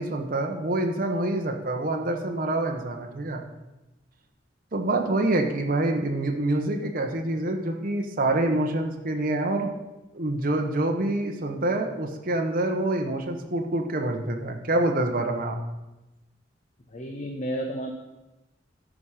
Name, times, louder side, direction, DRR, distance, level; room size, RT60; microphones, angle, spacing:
voice 1, 0.0-3.4 4.7-9.7 10.1-15.6, right 2 dB, 50° right, 3 dB, 1.0 m, -26 dB
voice 2, 16.9-17.9, equal, 40° left, 2 dB, 0.8 m, -32 dB
13.0 x 4.9 x 5.7 m, 1.0 s
head